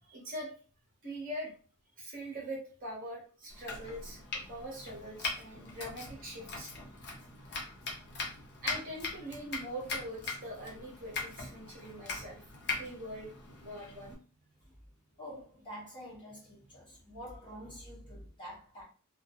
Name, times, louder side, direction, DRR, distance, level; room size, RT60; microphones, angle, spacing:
voice 1, 0.0-0.5 1.0-1.5 2.0-6.7 8.6-12.4 12.8-13.3 13.6-14.2, right 1 dB, 40° right, 0.9 m, -43 dB
Domestic sounds home sounds, 3.5-14.1, left 4 dB, 50° left, 0.6 m, -41 dB
voice 2, 15.2-18.8, equal, 20° left, 1.2 m, -47 dB
2.3 x 2.1 x 2.8 m
head